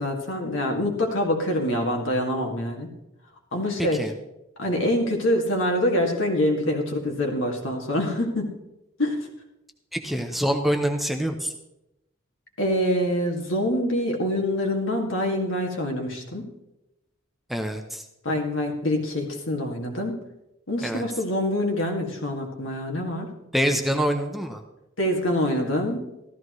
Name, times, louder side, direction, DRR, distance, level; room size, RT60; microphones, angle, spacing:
voice 1, 0.0-2.9 3.5-4.1 4.6-8.5 9.0-9.3 12.6-16.5 18.2-20.2 20.7-23.3 25.0-26.0, left 1 dB, 75° left, 2 dB, 2.1 m, -25 dB
voice 2, 3.8-4.1 9.9-11.5 17.5-18.0 20.8-21.0 23.5-24.6, equal, ahead, 4 dB, 0.7 m, -25 dB
14.5 x 13.5 x 3.1 m, 0.91 s
head